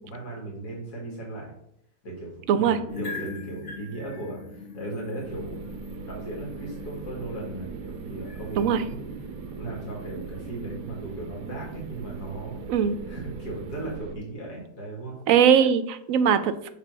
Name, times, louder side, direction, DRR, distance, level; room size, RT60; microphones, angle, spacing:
voice 1, 0.0-1.5 2.0-5.6 6.0-9.0 9.5-12.6 13.1-15.2, right 2 dB, 80° left, -2 dB, 2.5 m, -37 dB
sound 1, 2.9-14.0, left 4 dB, 40° left, 2.1 m, -42 dB
sound 2, 5.2-14.2, right 8 dB, 90° right, 1.1 m, -40 dB
voice 2, 15.3-16.7, right 8 dB, 70° right, 11 dB, 0.9 m, -20 dB
7.6 x 3.4 x 6.0 m, 0.74 s
omnidirectional pair, 1.7 m